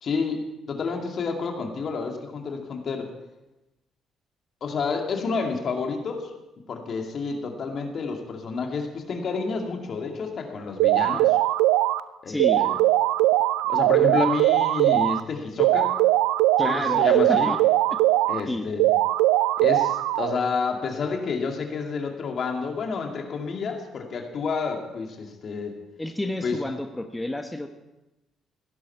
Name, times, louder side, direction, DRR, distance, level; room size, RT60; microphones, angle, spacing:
voice 1, 0.0-3.1 4.6-6.3 6.7-11.4 12.2-12.7 13.7-15.9 16.6-17.5 18.3-18.9 19.6-25.8 26.4-26.6, left 4 dB, 55° left, 3 dB, 2.3 m, -29 dB
sound 1, 10.8-12.0 12.4-15.2 15.6-18.4 18.8-20.4, right 16 dB, 80° right, 0.4 m, -20 dB
voice 2, 12.3-12.7 16.6-17.6 18.5-18.7 26.0-27.7, left 1 dB, 15° left, 6 dB, 1.2 m, -30 dB
17.0 x 11.0 x 4.6 m, 0.98 s
hypercardioid pair, 50°, 0 cm